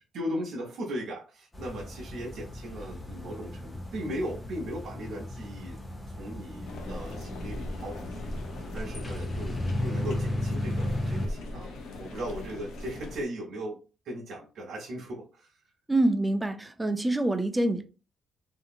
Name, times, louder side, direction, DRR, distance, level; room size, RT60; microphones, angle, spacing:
voice 1, 0.1-5.8 6.1-8.3 8.7-13.8 14.0-15.6, equal, 70° right, 0.7 m, -38 dB
sound 1, 1.5-11.3, left 1 dB, 15° left, 0.8 m, -35 dB
sound 2, 6.6-13.2, left 1 dB, 80° left, 0.7 m, -40 dB
voice 2, 15.9-17.8, right 1 dB, 10° right, 0.4 m, -26 dB
2.8 x 2.6 x 2.4 m
cardioid pair, 90°, 0 cm